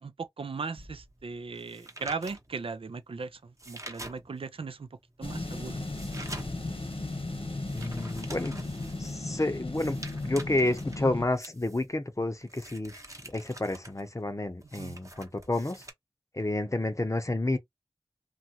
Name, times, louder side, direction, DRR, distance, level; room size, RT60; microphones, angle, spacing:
voice 1, 0.0-4.9 5.2-5.8 14.8-15.0, right 4 dB, 70° right, 0.4 m, -38 dB
sound 1, 0.8-4.6 5.0-15.9, right 1 dB, 35° right, 0.9 m, -47 dB
sound 2, 5.2-11.3, left 2 dB, 75° left, 1.1 m, -36 dB
voice 2, 7.7-8.6 9.0-13.0 13.3-15.8 16.3-17.6, left 2 dB, 35° left, 0.6 m, -30 dB
3.0 x 2.4 x 2.8 m
wide cardioid pair, 40°, 10 cm